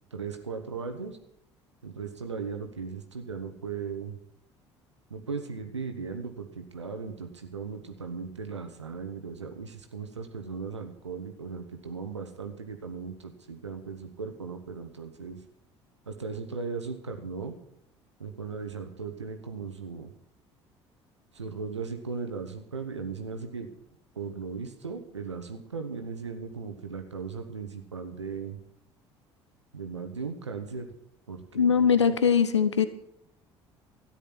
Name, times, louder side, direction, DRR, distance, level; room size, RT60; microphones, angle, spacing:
voice 1, 0.1-1.2 1.8-4.2 5.1-15.4 16.1-17.6 18.2-20.1 21.3-23.7 24.1-28.6 29.7-30.9 31.3-32.1, right 5 dB, 85° right, 6 dB, 1.1 m, -37 dB
voice 2, 31.5-32.9, left 7 dB, 85° left, 12 dB, 0.7 m, -21 dB
13.5 x 10.0 x 6.0 m, 0.73 s
figure-of-eight pair, 55°, 15 cm